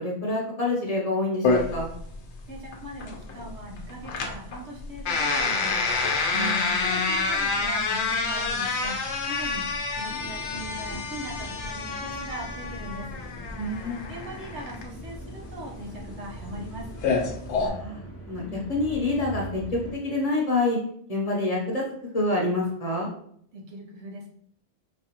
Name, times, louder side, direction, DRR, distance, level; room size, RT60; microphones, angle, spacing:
voice 1, 0.0-1.9 6.3-6.8 13.6-14.0 17.6-20.8 21.1-21.8 22.1-23.1, left 2 dB, 40° left, -3 dB, 0.8 m, -27 dB
sound 1, 1.4-17.7, left 4 dB, 85° left, 0.9 m, -28 dB
voice 2, 2.5-5.8 6.6-13.1 14.1-16.9 23.5-24.3, right 1 dB, 80° right, -1 dB, 1.1 m, -40 dB
sound 2, 10.1-20.0, right 1 dB, 20° left, 0.4 m, -42 dB
5.0 x 2.4 x 2.9 m, 0.65 s
omnidirectional pair, 1.1 m